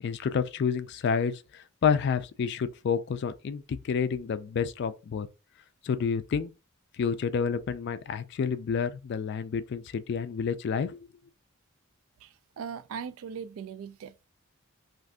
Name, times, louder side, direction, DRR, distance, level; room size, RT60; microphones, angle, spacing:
voice 1, 0.0-5.3 5.8-6.5 7.0-11.0, left 6 dB, 55° left, 0.3 m, -29 dB
voice 2, 12.2-14.3, right 6 dB, 75° right, 0.3 m, -40 dB
2.5 x 2.5 x 3.4 m
head